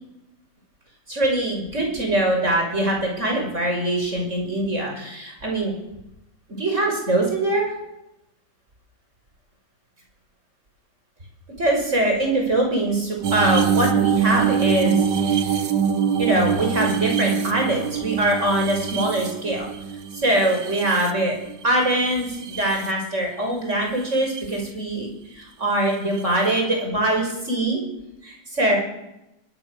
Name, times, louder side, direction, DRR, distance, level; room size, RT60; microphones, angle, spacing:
voice 1, 1.1-5.7 6.6-7.7 11.6-15.0 15.2-15.4 16.2-19.7 20.1-21.3 21.6-25.1 25.3-27.8 28.2-28.8, right 1 dB, 40° right, 1 dB, 6.6 m, -23 dB
sound 1, 13.2-21.6 22.1-22.9 24.1-24.4 26.2-26.3, right 7 dB, 80° right, 2.0 m, -24 dB
22.5 x 22.0 x 6.8 m, 0.91 s
omnidirectional pair, 1.9 m